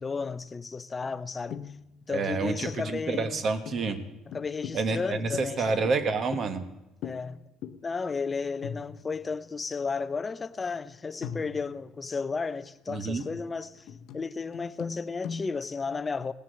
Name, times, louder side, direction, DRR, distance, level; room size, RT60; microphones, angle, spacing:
voice 1, 0.0-1.6 2.1-3.4 4.3-5.8 7.0-7.4 7.8-13.9 14.1-16.3, left 4 dB, 20° left, 0.5 m, -33 dB
sound 1, 1.5-2.0 2.3-2.4 2.6-6.7 7.0-7.3 7.6-7.9 8.2-8.3 8.6-9.5 10.2-10.3 11.2-12.1 12.6-15.5, left 7 dB, 65° left, 0.8 m, -41 dB
voice 2, 2.1-4.0 4.7-6.7 12.9-13.2, right 4 dB, 40° right, 1.3 m, -29 dB
18.0 x 7.4 x 7.6 m
cardioid pair, 130°, 0 cm